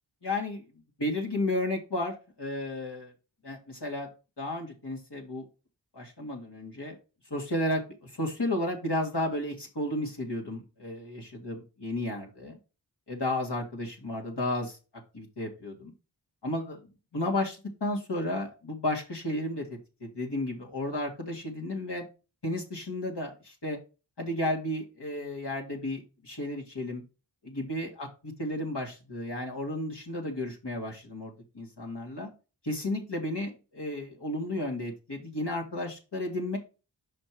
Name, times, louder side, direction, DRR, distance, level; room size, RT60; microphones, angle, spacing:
voice 1, 0.2-0.6 1.0-3.1 3.4-4.1 4.4-5.4 5.9-7.0 7.3-12.6 13.1-14.8 15.1-15.9 16.4-16.8 17.1-22.0 22.4-23.8 24.2-27.0 27.4-32.3 32.6-36.6, left 1 dB, 60° left, 0 dB, 2.0 m, -33 dB
5.5 x 5.1 x 4.6 m, 0.30 s
wide cardioid pair, 40°, 46 cm